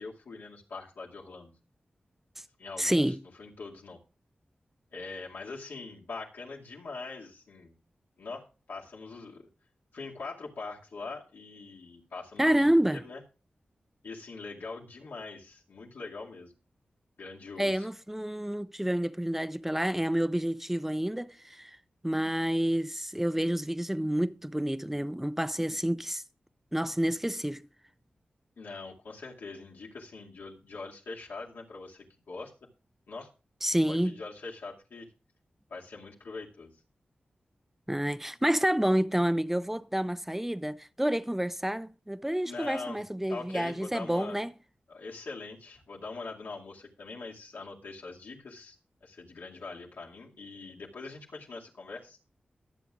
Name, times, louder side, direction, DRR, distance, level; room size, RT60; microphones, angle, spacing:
voice 1, 0.0-1.5 2.6-3.0 3.4-4.0 4.9-7.7 8.2-9.5 9.9-13.2 14.0-16.5 17.2-17.9 28.6-32.5 33.1-33.3 33.9-35.1 35.7-36.7 42.4-43.0 43.3-44.4 44.9-52.2, left 3 dB, 85° left, 2.3 m, -43 dB
voice 2, 2.8-3.2 12.4-13.0 17.6-21.8 22.0-26.2 26.7-27.7 33.6-34.2 37.9-44.5, right 1 dB, 10° right, 0.5 m, -29 dB
22.0 x 7.8 x 2.4 m
wide cardioid pair, 70°, 3 cm